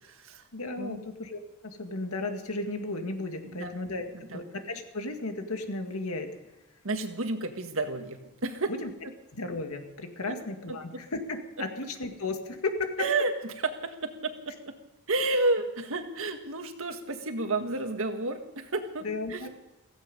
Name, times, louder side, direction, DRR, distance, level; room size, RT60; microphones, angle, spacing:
voice 1, 0.0-0.5 0.8-1.0 3.4-3.7 4.1-4.4 6.8-8.7 9.0-9.1 10.7-11.0 13.0-14.8 15.1-19.5, right 2 dB, 65° right, 6 dB, 1.7 m, -31 dB
voice 2, 0.5-6.3 8.7-8.9 9.3-12.9 19.0-19.5, left 2 dB, 85° left, 5 dB, 2.0 m, -34 dB
16.0 x 16.0 x 5.4 m, 0.96 s
head